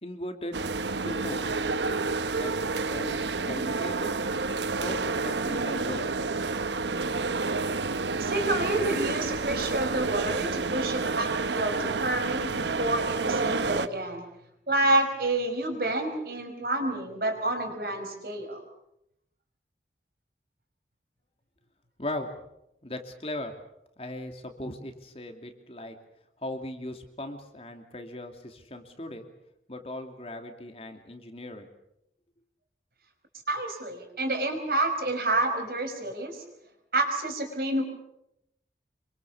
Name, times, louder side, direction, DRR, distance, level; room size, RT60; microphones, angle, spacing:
voice 1, 0.0-1.7 2.3-2.5 2.8-4.1 4.8-6.0 22.0-22.3 22.8-23.5 24.0-25.9 26.4-29.3 29.7-31.7, left 1 dB, 35° left, 5 dB, 2.7 m, -38 dB
sound 1, 0.5-13.9, right 3 dB, 85° right, 1.0 m, -29 dB
voice 2, 8.2-14.2 14.7-18.6 33.5-36.4 36.9-37.8, right 2 dB, 55° right, 6 dB, 5.4 m, -29 dB
27.0 x 24.0 x 7.1 m, 0.81 s
head